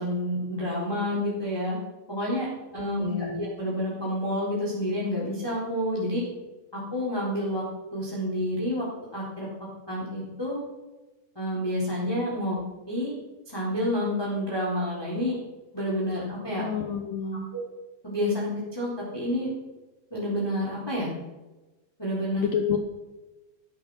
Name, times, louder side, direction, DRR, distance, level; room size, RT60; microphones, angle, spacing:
voice 1, 0.0-1.8 2.1-2.5 2.7-6.2 6.7-7.6 7.9-8.9 9.1-9.5 9.9-10.6 11.3-12.6 12.9-13.1 13.5-15.4 15.7-16.6 17.5-17.6 18.0-19.5 20.1-21.1 22.0-22.5, left 1 dB, 5° left, -6 dB, 3.0 m, -29 dB
voice 2, 3.0-3.5 16.5-17.5 22.4-22.8, left 7 dB, 75° left, 5 dB, 2.0 m, -29 dB
13.5 x 12.0 x 6.3 m, 1.1 s
omnidirectional pair, 5.0 m